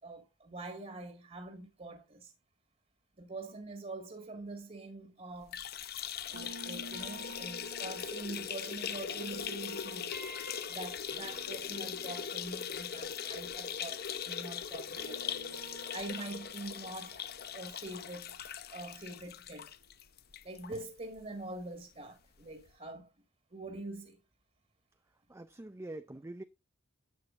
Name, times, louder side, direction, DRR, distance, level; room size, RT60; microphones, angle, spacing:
voice 1, 0.0-2.3 3.2-5.6 6.3-10.1 10.7-17.3 17.5-18.4 18.7-19.7 20.4-23.1 23.5-24.2, right 2 dB, 35° right, 1.9 m, -45 dB
sound 1, 5.4-20.8 21.2-21.3 21.6-21.7 22.7-22.8, left 8 dB, 50° left, 0.8 m, -40 dB
sound 2, 6.3-14.4 14.7-19.7, right 1 dB, 70° right, 2.1 m, -51 dB
voice 2, 25.3-26.4, right 1 dB, 15° right, 0.4 m, -44 dB
11.5 x 8.5 x 2.6 m
head